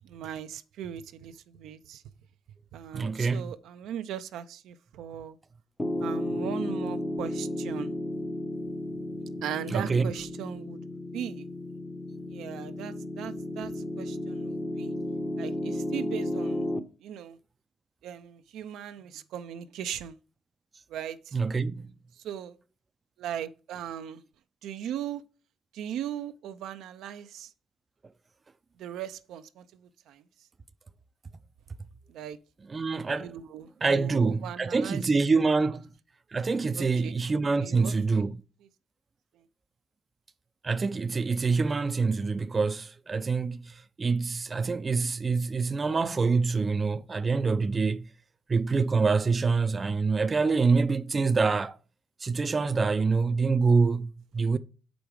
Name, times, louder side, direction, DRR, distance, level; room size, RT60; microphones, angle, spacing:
voice 1, 0.0-2.0 2.7-5.4 6.0-7.9 9.4-11.5 12.3-14.9 15.4-16.7 17.0-17.4 18.0-20.2 20.9-21.4 22.2-22.6 23.2-24.2 24.6-25.2 25.7-27.5 28.8-30.2 32.1-32.4 33.2-35.1 36.7-37.2 37.6-38.2 39.3-39.4, right 10 dB, 85° right, 0.5 m, -38 dB
voice 2, 2.9-3.5 9.7-10.1 21.3-21.9 32.7-33.3 33.8-35.8 36.3-38.4 40.6-48.1 48.5-51.8 52.2-54.6, right 4 dB, 30° right, 0.5 m, -26 dB
Piano, 5.8-16.8, left 1 dB, 10° left, 0.8 m, -33 dB
6.8 x 5.2 x 4.7 m
cardioid pair, 90°, 0 cm